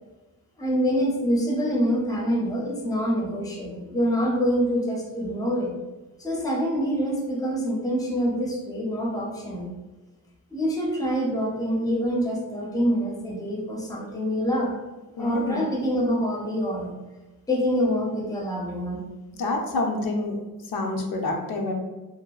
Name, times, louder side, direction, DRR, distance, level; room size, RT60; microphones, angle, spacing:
voice 1, 0.6-5.7 6.2-9.7 10.5-14.7 15.2-16.9 17.5-19.0, equal, 10° left, -2 dB, 0.5 m, -26 dB
voice 2, 15.2-15.6 19.4-20.4 20.6-21.7, left 2 dB, 85° left, 2 dB, 0.5 m, -27 dB
2.7 x 2.2 x 2.3 m, 1.1 s
wide cardioid pair, 100°, 35 cm